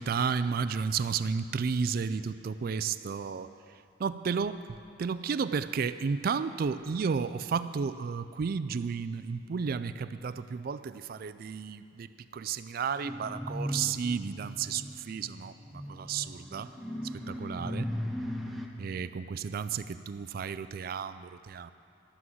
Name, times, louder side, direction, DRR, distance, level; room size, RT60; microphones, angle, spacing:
voice 1, 0.0-3.5 4.0-4.6 5.0-16.7 17.3-17.9 18.8-21.7, right 6 dB, 45° right, 13 dB, 0.3 m, -32 dB
sound 1, 13.0-18.7, equal, ahead, 0.7 m, -37 dB
12.5 x 6.0 x 7.8 m, 2.5 s
head